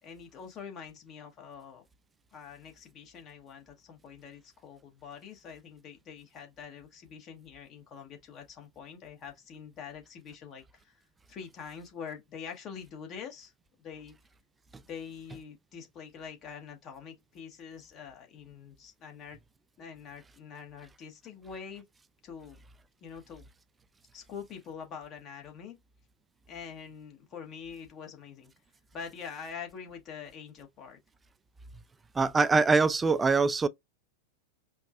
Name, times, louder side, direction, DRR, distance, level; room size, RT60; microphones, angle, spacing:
voice 1, 0.0-1.8 2.3-11.0 11.3-13.5 13.8-14.1 14.9-19.4 19.8-21.8 22.2-22.6 23.0-23.4 24.1-25.8 26.5-28.5 28.9-31.0, left 7 dB, 30° left, 1.2 m, -45 dB
voice 2, 32.2-33.7, right 4 dB, 15° right, 0.3 m, -23 dB
5.1 x 2.1 x 2.4 m
figure-of-eight pair, 90°, 0 cm